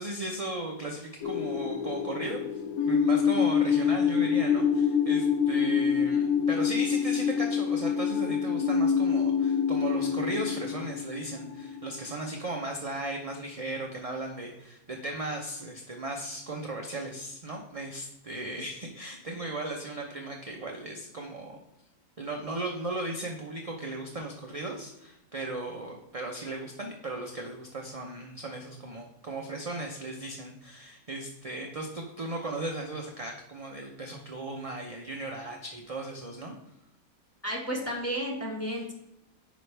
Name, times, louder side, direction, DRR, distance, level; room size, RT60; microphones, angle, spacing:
voice 1, 0.0-2.4 2.9-21.6 22.2-36.5 38.7-38.8, right 2 dB, 35° right, 1 dB, 0.6 m, -36 dB
sound 1, 1.2-12.1, left 7 dB, 75° left, 1.3 m, -26 dB
voice 2, 37.4-38.9, equal, 10° left, -1 dB, 1.5 m, -32 dB
9.7 x 5.2 x 3.3 m, 0.85 s
omnidirectional pair, 1.6 m